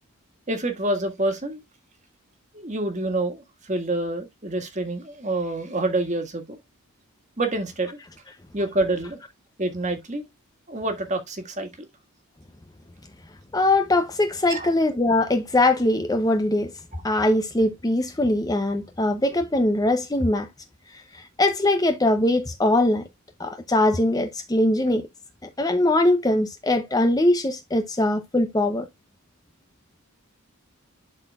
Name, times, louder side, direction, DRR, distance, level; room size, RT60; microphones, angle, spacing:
voice 1, 0.5-1.6 2.5-6.6 7.4-8.0 8.5-9.2 9.6-10.2 10.7-11.9 14.5-14.7, right 2 dB, 35° right, 1.7 m, -27 dB
voice 2, 13.5-16.7 17.0-20.5 20.9-23.0 23.4-25.1 25.6-28.9, left 1 dB, 15° left, 0.6 m, -21 dB
11.5 x 4.3 x 2.4 m
head